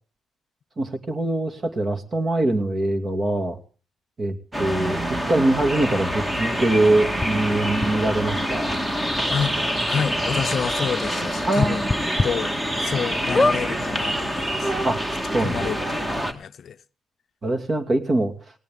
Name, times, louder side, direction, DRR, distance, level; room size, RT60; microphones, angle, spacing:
voice 1, 0.8-3.6 4.2-8.8 11.5-11.9 14.8-15.0 15.3-15.7 17.4-18.3, right 2 dB, 35° right, 2.5 m, -23 dB
sound 1, 4.5-16.3, equal, 15° right, 2.0 m, -26 dB
sound 2, 7.2-7.3 7.8-7.9 8.9-9.0 9.3-9.4 9.8-9.9 11.6-12.3 12.8-12.9 13.3-13.6 14.5-14.6 14.7-14.8, left 2 dB, 20° left, 1.1 m, -21 dB
voice 2, 9.9-11.9 12.2-12.5 12.8-14.7 15.4-16.8, left 7 dB, 55° left, 0.6 m, -28 dB
19.0 x 16.5 x 3.7 m
cardioid pair, 90°, 0 cm